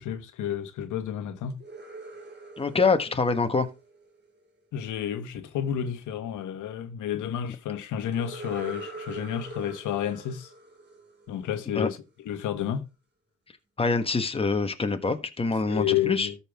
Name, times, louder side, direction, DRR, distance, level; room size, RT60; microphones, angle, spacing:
voice 1, 0.0-1.6 4.7-10.5 11.3-12.0 12.2-12.8 15.7-16.4, left 10 dB, 80° left, 1.3 m, -30 dB
sound 1, 1.5-4.5 8.1-11.8, right 2 dB, 35° right, 2.9 m, -43 dB
voice 2, 2.6-3.7 11.8-11.9 13.8-16.3, left 4 dB, 20° left, 1.4 m, -25 dB
13.5 x 5.7 x 3.6 m
cardioid pair, 90°, 30 cm